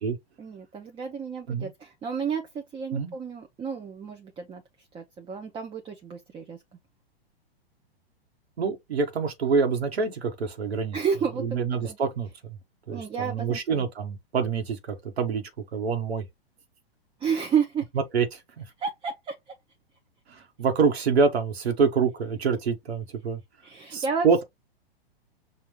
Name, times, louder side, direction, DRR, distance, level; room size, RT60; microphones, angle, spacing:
voice 1, 0.4-4.6 4.9-6.6 10.9-12.0 12.9-13.8 17.2-17.8 18.8-19.5 23.6-24.3, right 6 dB, 15° right, 0.5 m, -31 dB
voice 2, 8.6-11.0 11.4-12.3 12.9-15.4 15.7-16.2 18.1-18.6 20.3-23.4 23.9-24.4, right 5 dB, 85° right, 1.3 m, -26 dB
5.5 x 2.5 x 3.0 m
hypercardioid pair, 120°, 31 cm